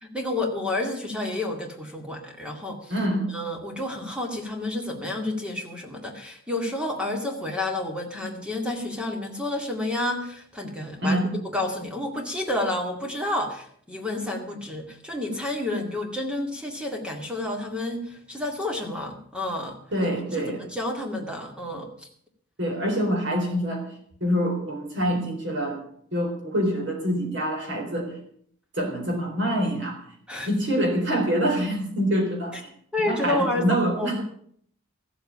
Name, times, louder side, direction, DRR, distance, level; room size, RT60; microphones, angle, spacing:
voice 1, 0.0-2.9 3.3-19.8 20.3-22.1 30.3-30.5 32.9-34.2, left 2 dB, 5° right, 2 dB, 2.2 m, -30 dB
voice 2, 2.9-3.3 11.0-11.3 19.9-20.6 22.6-23.8 24.2-25.8 26.1-28.1 28.7-30.0 30.5-32.7 33.0-34.2, equal, 55° right, 2 dB, 4.2 m, -25 dB
14.5 x 8.1 x 8.5 m, 0.62 s
head